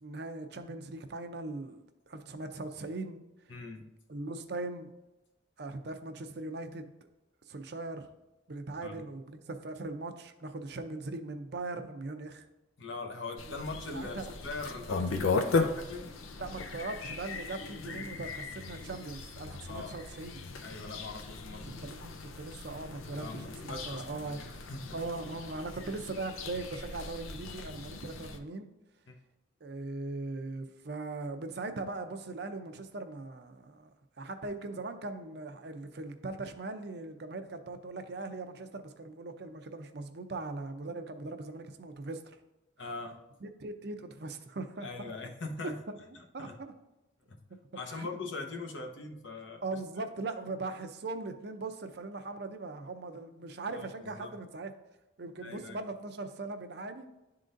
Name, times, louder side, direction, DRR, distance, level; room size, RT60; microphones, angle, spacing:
voice 1, 0.0-3.2 4.1-4.9 5.6-6.9 7.5-8.1 8.5-12.4 13.5-14.3 16.4-20.4 21.7-24.4 24.9-28.7 29.6-33.9 34.2-42.4 43.4-45.1 45.9-46.0 46.3-46.7 47.8-48.1 49.6-54.7 55.2-57.1, right 3 dB, 55° right, 7 dB, 0.5 m, -40 dB
voice 2, 3.5-3.9 8.8-9.0 12.8-16.1 19.7-20.0 20.6-21.8 23.2-25.0 29.1-29.2 42.8-43.2 44.8-45.8 46.1-46.6 47.3-47.4 47.7-49.6 53.7-54.4 55.4-55.8, left 3 dB, 70° left, 3 dB, 0.9 m, -41 dB
sound 1, 13.4-28.4, left 4 dB, 90° left, 0.6 m, -37 dB
11.0 x 3.8 x 2.6 m, 0.99 s
head